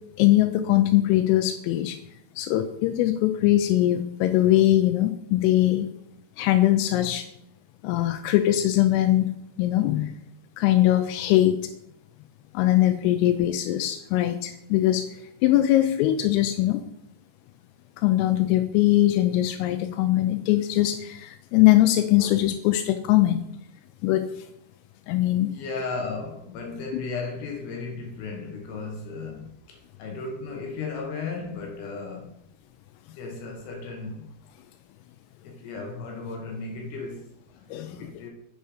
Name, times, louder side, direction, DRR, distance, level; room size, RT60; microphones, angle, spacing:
voice 1, 0.2-2.0 2.4-5.9 6.4-7.2 7.8-10.1 10.6-11.6 12.5-15.1 15.4-16.8 18.0-23.5 24.0-24.3 25.1-25.5 37.7-38.0, left 14 dB, 85° left, 3.2 m, -21 dB
voice 2, 25.3-32.4 33.2-34.3 35.4-38.3, left 4 dB, 70° left, 2.8 m, -35 dB
7.5 x 5.4 x 4.9 m
omnidirectional pair, 5.8 m